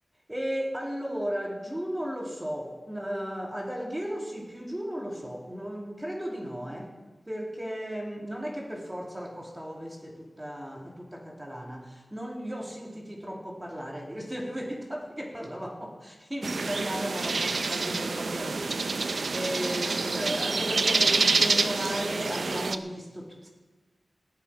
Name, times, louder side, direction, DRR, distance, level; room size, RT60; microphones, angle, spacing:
voice 1, 0.3-6.9 7.3-23.5, equal, 15° right, 0 dB, 2.5 m, -35 dB
sound 1, 16.4-22.8, right 3 dB, 65° right, 0.6 m, -27 dB
18.5 x 11.0 x 4.8 m, 1.2 s
wide cardioid pair, 95°, 0 cm